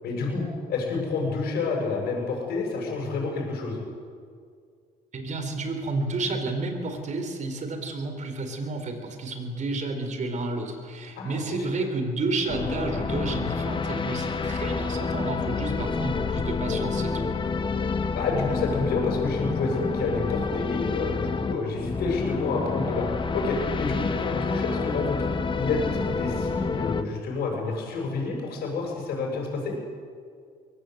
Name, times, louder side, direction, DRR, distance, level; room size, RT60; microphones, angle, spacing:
voice 1, 0.0-3.8 11.1-11.9 18.1-23.0 23.3-25.3 25.5-29.7, left 3 dB, 70° left, 0 dB, 6.8 m, -29 dB
voice 2, 5.1-17.3, right 2 dB, 45° right, 6 dB, 4.1 m, -31 dB
sound 1, 12.5-27.0, left 4 dB, 30° left, 1.5 m, -28 dB
22.5 x 19.0 x 7.9 m, 2.1 s
cardioid pair, 110°, 17 cm